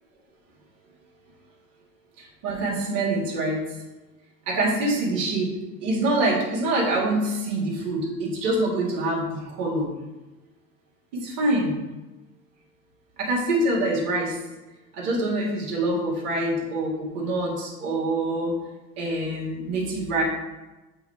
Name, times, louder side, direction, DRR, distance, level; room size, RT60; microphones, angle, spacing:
voice 1, 2.2-3.6 4.5-5.5 5.8-9.9 11.1-11.8 13.2-14.4 14.9-18.5 19.0-20.2, right 2 dB, 65° right, -4 dB, 2.2 m, -25 dB
7.8 x 3.2 x 4.4 m, 1.1 s
hypercardioid pair, 90°, 49 cm